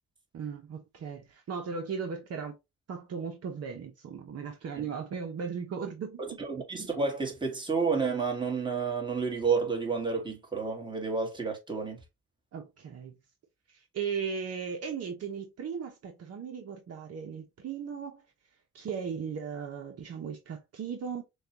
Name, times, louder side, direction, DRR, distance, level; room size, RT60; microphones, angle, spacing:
voice 1, 0.3-2.5 2.9-6.4 12.5-13.1 13.7-18.2 18.7-21.2, right 6 dB, 55° right, 0.9 m, -37 dB
voice 2, 6.2-12.0, right 5 dB, 15° right, 1.7 m, -30 dB
6.3 x 2.4 x 2.9 m
cardioid pair, 90°, 30 cm